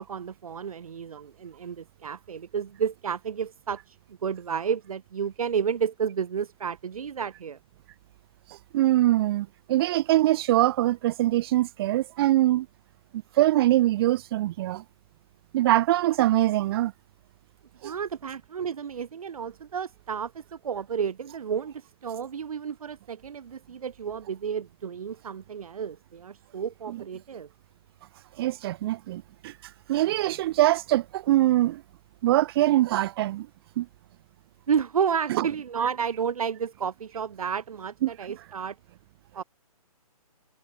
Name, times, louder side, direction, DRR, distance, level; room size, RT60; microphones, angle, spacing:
voice 1, 0.0-7.6 17.8-27.5 34.7-38.8 39.3-39.4, right 7 dB, 65° right, 2.2 m, -31 dB
voice 2, 8.7-12.7 13.4-14.8 15.5-16.9 17.8-17.9 26.9-27.0 28.4-29.5 29.9-31.8 32.2-33.5 33.8-33.9 35.3-35.5 38.0-38.1, right 15 dB, 40° right, 2.5 m, -23 dB
hypercardioid pair, 140°, 20 cm